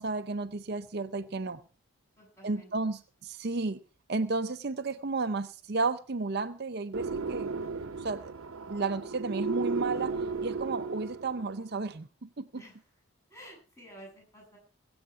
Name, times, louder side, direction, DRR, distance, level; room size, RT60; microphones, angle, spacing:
voice 1, 0.0-1.6 2.4-3.8 4.1-7.5 8.0-8.3 8.7-10.1 10.4-12.4, right 3 dB, 50° right, 0.6 m, -32 dB
voice 2, 2.2-2.7 12.5-13.0 13.3-14.6, equal, 15° left, 7.9 m, -51 dB
sound 1, 6.9-11.5, right 4 dB, 85° right, 0.9 m, -34 dB
21.5 x 7.9 x 4.8 m
head